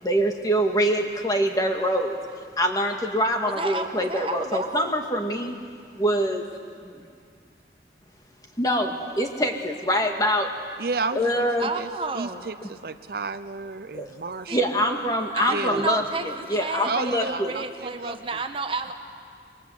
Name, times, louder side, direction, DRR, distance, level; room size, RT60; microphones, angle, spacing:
voice 1, 0.0-2.1 2.6-5.6 6.0-6.4 6.8-7.1 8.6-10.5 11.2-11.7 13.9-14.1 14.5-17.5, equal, 20° left, 3 dB, 1.9 m, -24 dB
voice 2, 3.4-4.9 11.6-12.5 14.5-14.6 15.4-18.9, right 3 dB, 30° right, 7 dB, 1.2 m, -31 dB
voice 3, 10.8-11.9 12.1-14.7 15.5-15.9 16.8-18.2, right 4 dB, 55° right, 12 dB, 0.6 m, -32 dB
27.5 x 23.0 x 8.1 m, 2.3 s
head